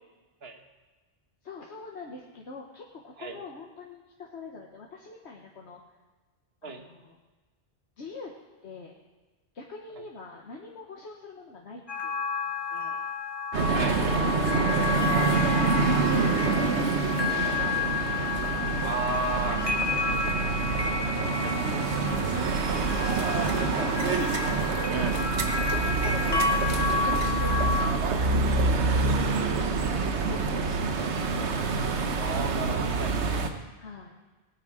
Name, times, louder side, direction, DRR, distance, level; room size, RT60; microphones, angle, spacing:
voice 1, 1.4-5.8 6.6-7.2 8.0-8.3 8.6-8.9 9.5-12.1 12.7-13.0 13.8-15.9 17.4-18.1 21.1-22.5 22.8-24.9 25.7-31.5 32.6-33.3 33.6-34.1, left 3 dB, 75° left, -1 dB, 1.5 m, -44 dB
sound 1, 11.9-27.9, left 4 dB, 25° left, 1.0 m, -31 dB
sound 2, 13.5-33.5, right 4 dB, 80° right, 1.3 m, -26 dB
voice 2, 18.8-20.6 21.4-21.5 26.0-26.2 31.0-31.2 32.2-33.1, right 3 dB, 65° right, 5 dB, 1.6 m, -34 dB
19.0 x 9.0 x 5.0 m, 1.3 s
omnidirectional pair, 1.1 m